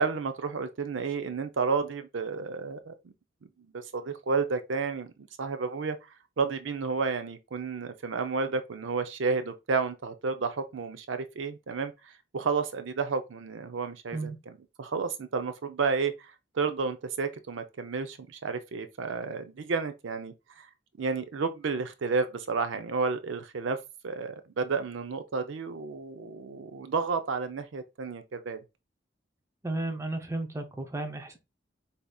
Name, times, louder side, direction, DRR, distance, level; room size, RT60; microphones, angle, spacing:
voice 1, 0.0-3.1 3.7-5.1 5.4-6.0 6.4-20.7 21.0-23.8 24.0-28.6, right 4 dB, 80° right, 0.5 m, -31 dB
voice 2, 29.6-31.4, right 2 dB, 15° right, 0.6 m, -33 dB
4.8 x 2.8 x 2.3 m
head